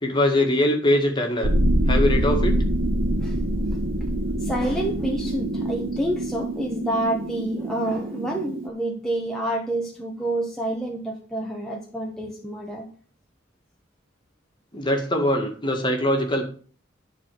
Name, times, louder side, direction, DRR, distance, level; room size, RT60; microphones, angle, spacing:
voice 1, 0.0-1.5 1.9-2.5 14.7-16.4, left 1 dB, 25° left, 3 dB, 1.9 m, -22 dB
sound 1, 1.4-8.7, right 1 dB, 90° right, 1.3 m, -25 dB
voice 2, 4.4-12.9, right 1 dB, 5° left, -2 dB, 1.2 m, -28 dB
11.0 x 4.2 x 7.5 m, 0.43 s
head